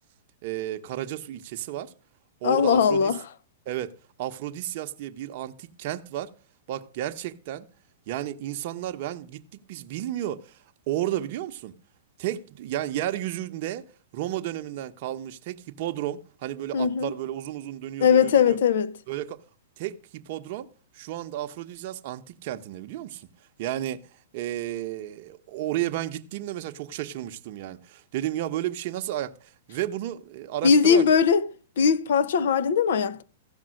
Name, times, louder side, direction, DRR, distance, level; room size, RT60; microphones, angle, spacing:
voice 1, 0.4-1.9 2.4-3.1 3.7-3.9 4.2-6.3 6.7-7.7 8.1-9.4 9.7-11.7 12.2-13.9 14.1-18.6 19.1-19.4 19.8-20.7 20.9-23.3 23.6-31.0, right 13 dB, 50° right, 0.8 m, -32 dB
voice 2, 2.4-3.2 16.7-17.1 18.0-18.9 30.6-31.4 31.8-33.2, left 6 dB, 70° left, 0.7 m, -20 dB
15.0 x 5.3 x 6.4 m
hypercardioid pair, 145°, 0 cm